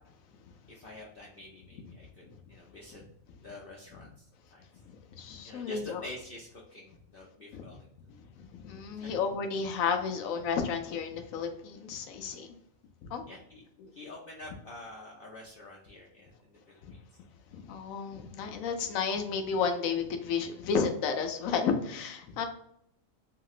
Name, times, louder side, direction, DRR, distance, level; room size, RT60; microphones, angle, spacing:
voice 1, 0.7-3.0 3.4-4.1 4.5-4.6 5.4-7.9 9.0-9.1 13.3-13.6 13.9-17.0, left 1 dB, 55° left, -4 dB, 0.7 m, -47 dB
voice 2, 5.1-6.1 7.5-7.6 8.2-8.3 8.6-12.5 13.0-13.2 13.8-13.9 16.8-16.9 17.5-22.4, left 5 dB, 85° left, 5 dB, 1.0 m, -32 dB
2.9 x 2.9 x 2.4 m, 0.72 s
omnidirectional pair, 1.4 m